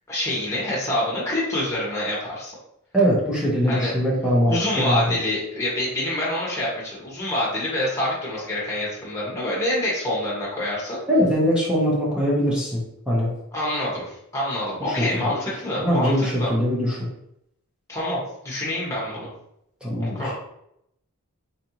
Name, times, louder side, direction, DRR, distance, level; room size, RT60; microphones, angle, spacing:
voice 1, 0.1-2.5 3.7-3.9 4.5-11.0 13.5-16.5 17.9-19.3 20.0-20.3, left 1 dB, 15° left, -6 dB, 1.5 m, -26 dB
voice 2, 2.9-5.1 11.1-13.3 15.1-15.4 15.8-17.0 19.8-20.2, equal, 5° right, -6 dB, 1.0 m, -22 dB
3.9 x 3.3 x 2.9 m, 0.76 s
head